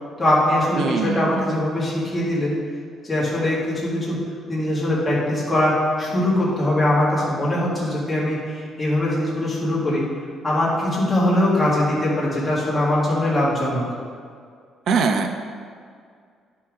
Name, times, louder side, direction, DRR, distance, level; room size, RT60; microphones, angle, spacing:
voice 1, 0.2-2.5 3.0-4.2 4.5-10.0 10.4-13.8, left 1 dB, 10° left, -8 dB, 2.2 m, -21 dB
voice 2, 0.8-1.5 14.9-15.3, right 5 dB, 55° right, 5 dB, 0.5 m, -22 dB
10.0 x 5.8 x 3.7 m, 2.1 s
cardioid pair, 170°, 0 cm